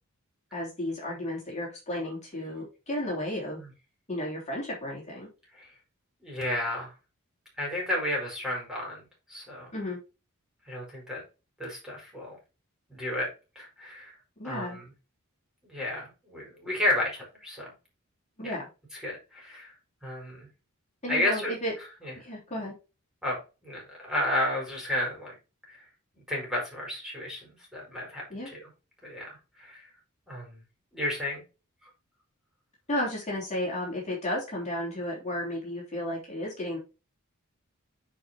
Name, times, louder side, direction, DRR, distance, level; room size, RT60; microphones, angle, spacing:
voice 1, 0.5-3.6 4.1-5.3 9.7-10.0 14.4-14.8 18.4-18.7 21.0-21.7 22.2-22.7 28.3-28.5 32.9-36.8, left 1 dB, 30° left, -4 dB, 3.3 m, -33 dB
voice 2, 6.2-6.9 7.6-9.0 9.3-9.7 10.7-11.2 11.6-12.4 12.9-13.3 13.5-14.1 14.4-14.8 15.6-17.7 18.4-18.5 19.0-19.7 20.0-20.5 21.1-21.5 22.0-22.1 23.2-25.3 25.7-25.8 26.1-28.6 29.0-29.3 29.6-29.9 30.3-30.6 30.9-31.4, left 1 dB, 5° right, -3 dB, 4.9 m, -32 dB
10.0 x 5.2 x 2.9 m, 0.30 s
head